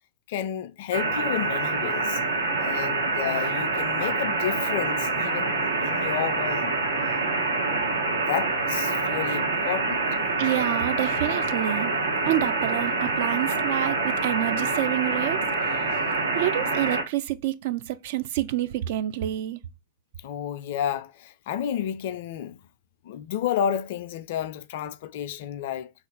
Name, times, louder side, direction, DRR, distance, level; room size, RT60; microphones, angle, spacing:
voice 1, 0.3-2.2 2.6-6.8 8.1-10.0 20.2-22.6 23.0-25.9, left 10 dB, 55° left, 0.3 m, -31 dB
sound 1, 0.9-17.0, right 3 dB, 75° right, 0.7 m, -26 dB
voice 2, 10.4-11.9 12.3-15.9 16.3-19.6, right 13 dB, 50° right, 0.3 m, -28 dB
2.9 x 2.3 x 4.2 m
figure-of-eight pair, 90°, 0 cm